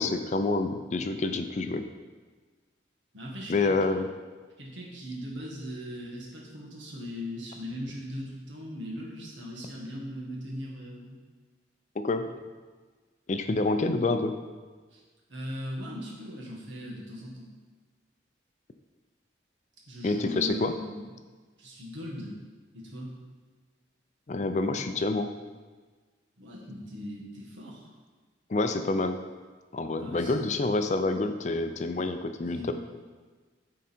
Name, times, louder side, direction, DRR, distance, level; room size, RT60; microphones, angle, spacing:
voice 1, 0.0-1.9 3.5-4.1 12.0-12.3 13.3-14.4 20.0-20.7 24.3-25.3 28.5-29.2 29.7-32.7, left 3 dB, 40° left, 8 dB, 0.4 m, -27 dB
voice 2, 3.1-3.8 4.6-11.2 14.9-15.0 15.3-17.4 19.9-21.1 21.6-22.4 22.7-23.1 26.4-27.9 30.0-30.3 32.5-32.7, equal, 90° right, -2 dB, 1.6 m, -39 dB
10.0 x 3.8 x 4.4 m, 1.4 s
head